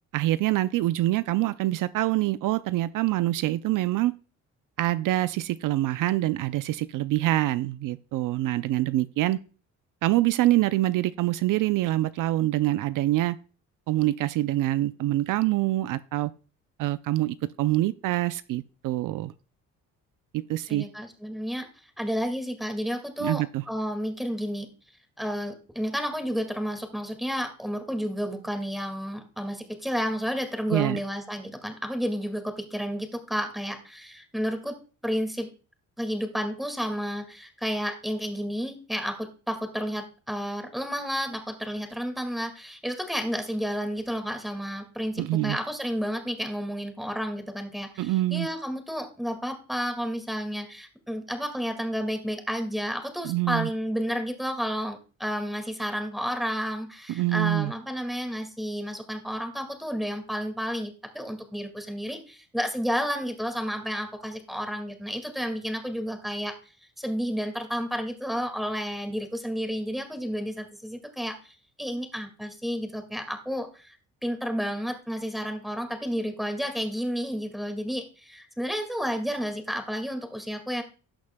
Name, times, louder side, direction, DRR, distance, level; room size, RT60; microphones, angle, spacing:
voice 1, 0.1-4.1 4.8-9.4 10.0-13.4 13.9-16.3 16.8-19.3 20.3-20.9 23.2-23.6 30.7-31.0 45.2-45.6 48.0-48.5 53.2-53.7 57.1-57.7, right 16 dB, 70° right, 14 dB, 0.5 m, -25 dB
voice 2, 20.7-21.7 22.0-24.7 25.2-35.5 36.0-66.5 67.0-74.0 74.2-80.8, equal, ahead, 6 dB, 2.0 m, -31 dB
17.5 x 6.2 x 2.2 m, 0.36 s
cardioid pair, 85°, 33 cm